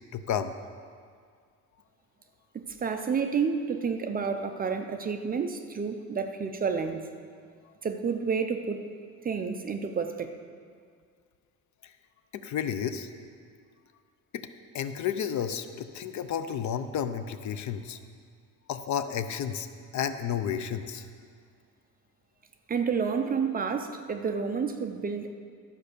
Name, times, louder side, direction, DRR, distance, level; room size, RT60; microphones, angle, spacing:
voice 1, 0.1-0.5 12.3-13.1 14.3-14.5 14.7-18.0 18.7-19.7 19.9-21.1, left 8 dB, 60° left, 10 dB, 0.6 m, -31 dB
voice 2, 2.5-7.1 7.8-8.9 9.2-10.3 22.7-25.3, right 5 dB, 30° right, 6 dB, 0.5 m, -30 dB
12.5 x 5.6 x 6.7 m, 2.1 s
cardioid pair, 170°, 32 cm